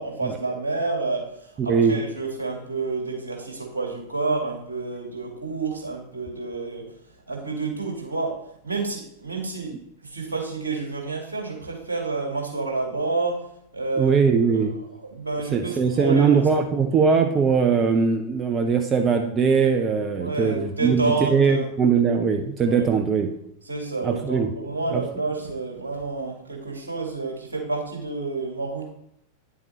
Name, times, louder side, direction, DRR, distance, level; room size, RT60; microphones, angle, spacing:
voice 1, 0.0-1.3 1.6-6.8 7.3-8.4 8.6-9.7 10.1-13.4 13.7-14.1 14.5-14.6 15.1-16.4 20.2-21.6 22.7-22.8 23.7-28.9, right 3 dB, 75° right, -1 dB, 2.2 m, -29 dB
voice 2, 1.6-2.0 14.0-14.7 15.5-23.3 24.0-24.5 24.9-25.0, right 5 dB, 25° right, 5 dB, 0.7 m, -21 dB
9.7 x 7.2 x 2.9 m, 0.74 s
figure-of-eight pair, 90°, 0 cm